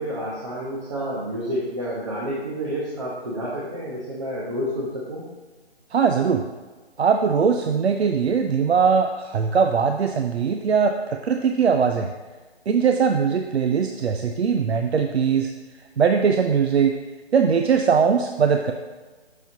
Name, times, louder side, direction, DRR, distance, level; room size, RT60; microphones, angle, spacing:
voice 1, 0.0-5.3, equal, 30° right, -5 dB, 0.9 m, -29 dB
voice 2, 5.9-6.4 7.0-12.1 12.7-15.5 16.0-16.9 17.3-18.7, right 6 dB, 75° right, 5 dB, 0.5 m, -20 dB
6.9 x 6.3 x 2.8 m, 1.3 s
hypercardioid pair, 170°, 33 cm